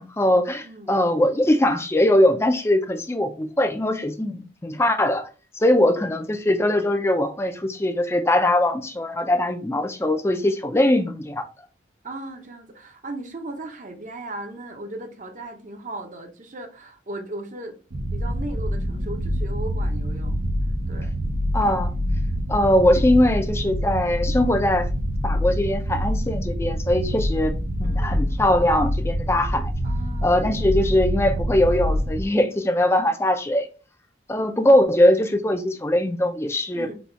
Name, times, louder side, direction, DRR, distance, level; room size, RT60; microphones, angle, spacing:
voice 1, 0.0-5.3 5.6-11.5 21.5-21.9 22.5-24.9 25.2-29.7 30.2-33.7 34.3-36.9, left 1 dB, 15° left, 0.4 m, -21 dB
voice 2, 0.6-1.0 12.0-20.4 20.9-21.1 21.6-21.8 27.8-28.3 29.8-30.5 36.7-36.9, right 2 dB, 40° right, 0.7 m, -37 dB
sound 1, 17.9-32.3, equal, 80° right, 0.9 m, -26 dB
4.1 x 2.4 x 4.3 m
head